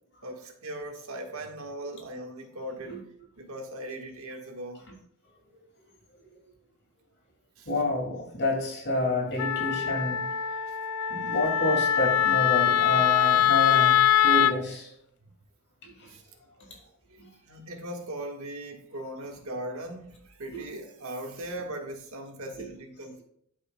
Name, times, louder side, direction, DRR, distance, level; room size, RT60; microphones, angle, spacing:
voice 1, 0.2-3.0 3.4-4.8 7.6-7.7 16.0-16.2 16.6-16.7 17.1-23.2, right 1 dB, 70° right, 1.5 m, -39 dB
voice 2, 7.7-10.3 11.1-14.9 15.8-16.1 17.2-17.3 20.5-20.6 22.6-22.7, left 1 dB, 50° left, 2.3 m, -29 dB
Wind instrument woodwind instrument, 9.4-14.6, left 11 dB, 85° left, 0.4 m, -23 dB
12.5 x 5.4 x 2.2 m
head